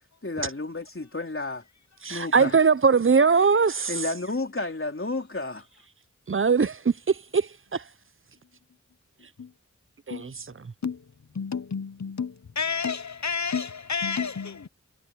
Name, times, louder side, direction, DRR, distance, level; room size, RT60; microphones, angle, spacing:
voice 1, 0.2-1.7 2.1-2.6 3.9-5.7, left 2 dB, 45° left, 4.0 m, -31 dB
voice 2, 2.0-3.9 6.3-7.8 10.1-10.5, right 5 dB, 45° right, 0.7 m, -21 dB
voice 3, 11.4-14.7, left 6 dB, 65° left, 0.9 m, -30 dB
wide cardioid pair, 45°, 30 cm